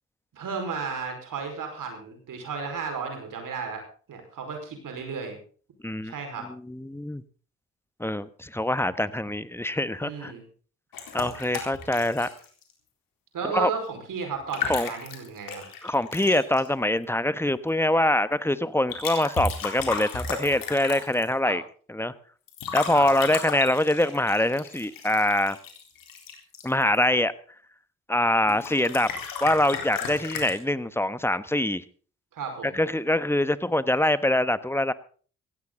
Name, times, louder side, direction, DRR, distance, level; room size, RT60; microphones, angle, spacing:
voice 1, 0.3-3.8 4.1-5.4 6.0-6.5 10.0-10.4 13.3-15.6 21.4-21.6 22.9-23.3 32.3-32.7, right 5 dB, 70° right, 4 dB, 4.9 m, -34 dB
voice 2, 5.8-6.1 6.7-7.2 8.0-10.3 11.1-12.3 13.5-13.7 14.7-14.9 15.8-21.6 21.9-22.1 22.7-25.6 26.6-27.3 28.1-29.1 29.4-31.8 32.6-34.9, left 1 dB, 5° left, 15 dB, 1.3 m, -24 dB
sound 1, 10.9-12.7 14.3-16.7 18.9-21.3 22.5-27.0 28.5-30.5, left 6 dB, 75° left, 3.9 m, -34 dB
16.5 x 16.0 x 3.9 m, 0.42 s
hypercardioid pair, 40°, 34 cm